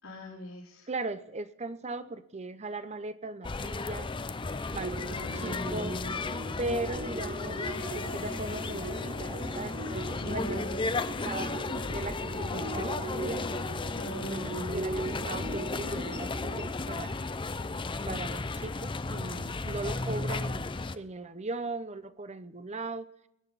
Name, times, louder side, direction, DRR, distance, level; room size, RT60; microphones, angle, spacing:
voice 1, 0.0-0.9 5.1-6.2 10.2-10.8 13.9-14.9, left 1 dB, 85° left, -6 dB, 3.9 m, -40 dB
voice 2, 0.9-4.1 4.7-5.1 5.4-5.9 6.6-7.7 7.9-10.7 11.2-13.5 14.3-14.4 14.7-17.2 18.1-20.6 20.9-23.1, right 2 dB, 30° right, 13 dB, 0.8 m, -38 dB
sound 1, 3.4-21.0, left 3 dB, 25° left, 0.5 m, -34 dB
sound 2, 4.8-16.7, right 2 dB, 60° right, 4.5 m, -39 dB
sound 3, 7.7-11.0, left 3 dB, 65° left, 2.7 m, -49 dB
21.5 x 9.7 x 4.1 m, 0.81 s
head